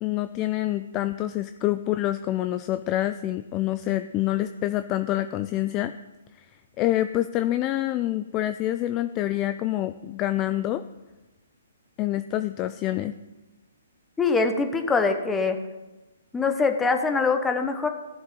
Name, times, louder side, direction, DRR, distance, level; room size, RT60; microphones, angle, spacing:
voice 1, 0.0-5.9 6.4-6.5 6.8-10.8 12.0-13.1, left 14 dB, 25° left, 11 dB, 0.4 m, -26 dB
voice 2, 14.2-15.6 16.3-17.9, left 4 dB, 10° left, 6 dB, 1.0 m, -23 dB
16.0 x 7.2 x 3.8 m, 1.1 s
hypercardioid pair, 140°, 0 cm